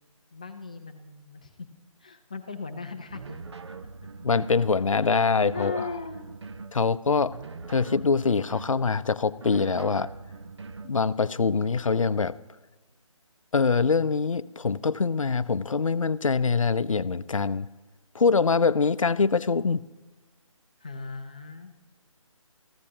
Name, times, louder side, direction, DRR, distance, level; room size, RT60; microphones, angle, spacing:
voice 1, 0.3-1.7 2.0-3.4 5.0-6.3 20.8-21.7, left 4 dB, 15° left, 6 dB, 0.4 m, -38 dB
sound 1, 3.1-4.7 5.2-6.8 7.3-8.9 9.4-10.9, right 4 dB, 50° right, 0.7 m, -41 dB
voice 2, 4.2-5.9 6.7-7.4 7.7-10.1 10.8-12.4 13.5-17.7 18.1-19.8, left 4 dB, 65° left, 16 dB, 0.5 m, -24 dB
21.5 x 15.0 x 2.8 m, 1.2 s
figure-of-eight pair, 155°, 18 cm